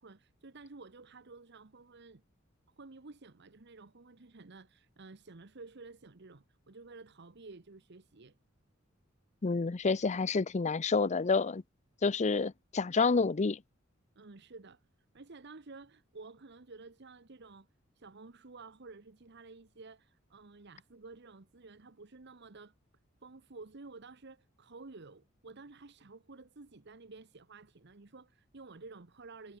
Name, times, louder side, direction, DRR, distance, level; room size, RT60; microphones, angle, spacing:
voice 1, 0.0-2.2 2.8-8.4 14.1-14.8 15.1-17.7 17.9-22.7 23.2-29.6, right 3 dB, 55° right, 1.1 m, -52 dB
voice 2, 9.4-11.6 12.0-13.6, left 4 dB, 35° left, 0.5 m, -29 dB
head